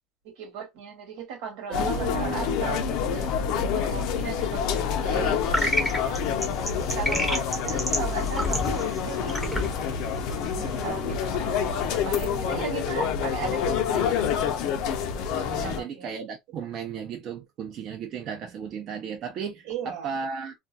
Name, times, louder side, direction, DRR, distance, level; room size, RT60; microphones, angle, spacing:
voice 1, 0.4-3.3 3.6-6.2 6.6-9.7 10.6-14.5 15.6-16.1 19.7-20.1, right 6 dB, 80° right, 1.2 m, -37 dB
sound 1, 1.7-15.8, left 7 dB, 65° left, 0.5 m, -27 dB
voice 2, 1.7-3.8 10.5-11.2 15.3-20.5, right 7 dB, 45° right, 0.6 m, -36 dB
sound 2, 5.5-10.9, left 1 dB, ahead, 0.7 m, -30 dB
2.4 x 2.3 x 2.6 m
cardioid pair, 160°, 0 cm